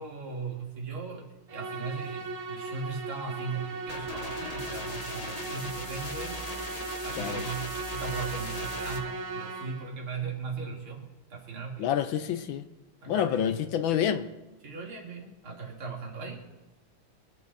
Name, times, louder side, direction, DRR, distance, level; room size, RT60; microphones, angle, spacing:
voice 1, 0.0-6.4 7.0-11.9 13.0-13.4 14.6-16.4, right 5 dB, 70° right, 0 dB, 3.1 m, -38 dB
Musical instrument, 1.5-10.0, right 3 dB, 50° right, 1.5 m, -37 dB
sound 1, 3.9-9.0, left 3 dB, 45° left, 0.5 m, -39 dB
voice 2, 11.8-12.6 13.1-14.3, left 9 dB, 70° left, 10 dB, 1.3 m, -28 dB
23.0 x 8.7 x 4.1 m, 1.1 s
omnidirectional pair, 2.4 m